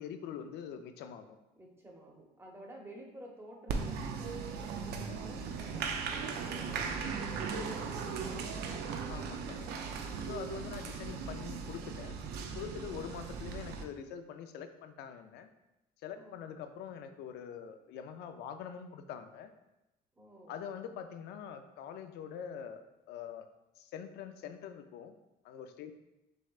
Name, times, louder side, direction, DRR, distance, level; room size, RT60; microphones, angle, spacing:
voice 1, 0.0-1.4 9.1-9.8 10.2-12.2 12.5-15.5 16.0-19.5 20.5-22.8 23.1-23.5 23.8-25.1 25.4-25.9, left 8 dB, 80° left, 8 dB, 0.5 m, -44 dB
voice 2, 1.5-7.3 12.9-13.4 16.1-16.6 17.8-17.9 20.1-20.6, right 1 dB, 15° right, 0 dB, 1.0 m, -53 dB
Applause, 3.7-13.8, right 5 dB, 80° right, 0.6 m, -38 dB
6.2 x 3.2 x 2.4 m, 0.94 s
cardioid pair, 110°, 17 cm